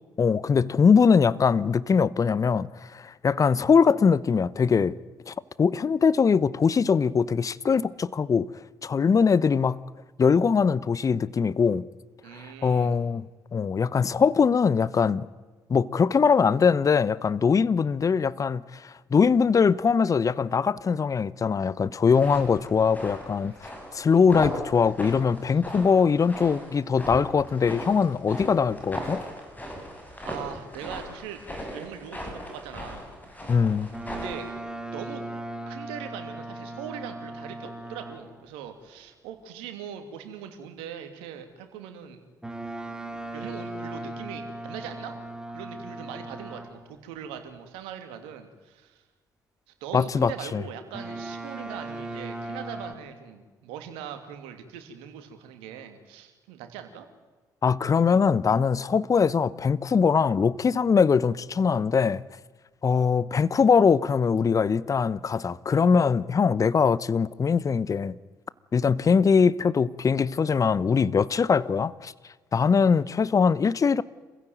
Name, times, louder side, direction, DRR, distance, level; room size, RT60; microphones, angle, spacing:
voice 1, 0.2-5.0 5.3-8.5 8.8-9.8 10.2-11.9 12.6-13.3 13.5-15.3 15.7-23.7 23.9-29.2 33.5-33.9 49.9-50.6 57.6-62.2 62.8-68.2 68.7-72.1 72.5-74.0, left 6 dB, 35° left, 0.9 m, -22 dB
voice 2, 12.2-13.0 25.5-25.6 30.2-31.4 31.7-33.1 34.1-34.5 34.9-35.2 35.7-42.2 43.3-45.2 45.5-49.0 49.8-57.1, right 9 dB, 70° right, 2.6 m, -41 dB
sound 1, 22.1-34.5, equal, 15° left, 7.7 m, -38 dB
Boat Water vehicle, 33.9-38.5 42.4-47.0 50.9-52.9, right 2 dB, 5° right, 3.7 m, -38 dB
27.0 x 15.5 x 9.3 m
hypercardioid pair, 50°, 10 cm